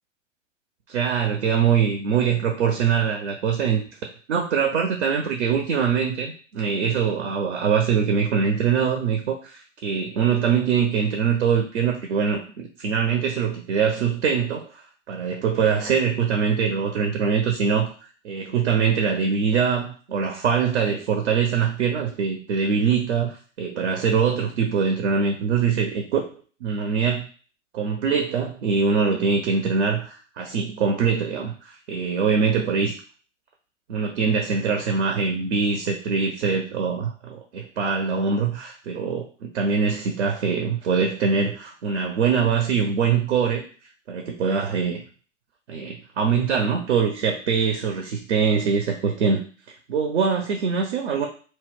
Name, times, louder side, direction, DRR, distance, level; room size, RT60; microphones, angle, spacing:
voice 1, 0.9-3.8 4.3-14.8 15.1-17.9 18.2-26.2 26.6-27.3 27.7-33.0 33.9-43.7 44.1-45.0 45.7-49.4 49.9-51.3, right 6 dB, 60° right, 3 dB, 0.6 m, -23 dB
2.2 x 2.0 x 3.5 m, 0.39 s
figure-of-eight pair, 95°, 38 cm